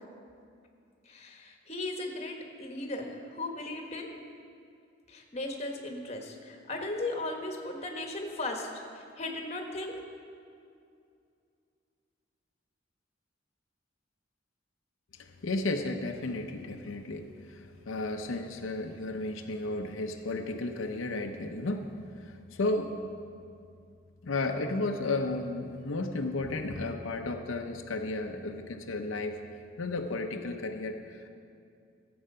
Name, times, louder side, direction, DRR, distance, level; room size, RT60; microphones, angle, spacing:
voice 1, 1.0-4.1 5.1-9.9, left 2 dB, 35° left, 3 dB, 1.2 m, -37 dB
voice 2, 15.1-21.9 22.2-23.0 24.2-29.4 29.8-31.3, left 2 dB, 85° left, 4 dB, 0.7 m, -33 dB
14.0 x 7.9 x 5.5 m, 2.4 s
head